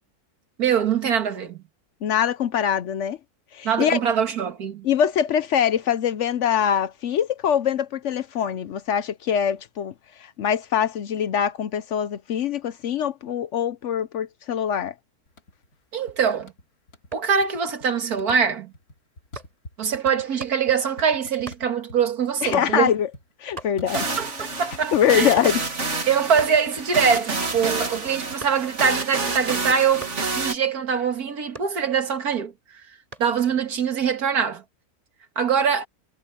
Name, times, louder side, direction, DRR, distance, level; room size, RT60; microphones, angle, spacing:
voice 1, 0.6-1.6 3.6-4.8 15.9-16.5 17.1-18.7 19.8-22.9 23.9-25.4 26.1-32.5 33.2-34.6 35.4-35.9, right 7 dB, 85° right, 2.2 m, -23 dB
voice 2, 2.0-3.2 3.5-4.0 4.8-9.9 10.2-14.9 22.4-23.1 23.4-24.2 24.9-25.6, left 9 dB, 60° left, 0.9 m, -23 dB
sound 1, 15.3-15.8 16.1-17.1 17.4-17.9 18.1-22.0 22.3-24.4 24.7-25.6 25.8-28.7, left 1 dB, 80° left, 3.2 m, -45 dB
chopping wood with axe, 17.1-17.4 18.3-18.6 19.4-19.6 20.4-20.6 21.4-21.7 22.5-22.8 23.2-23.3 23.4-24.0 24.4-24.8 25.3-25.7 26.4-27.1 27.5-28.9 30.0-30.3 31.5-32.2 33.1-33.4, right 2 dB, 25° right, 4.6 m, -41 dB
sound 2, 23.9-30.5, right 3 dB, 50° right, 2.6 m, -29 dB
omnidirectional pair, 1.6 m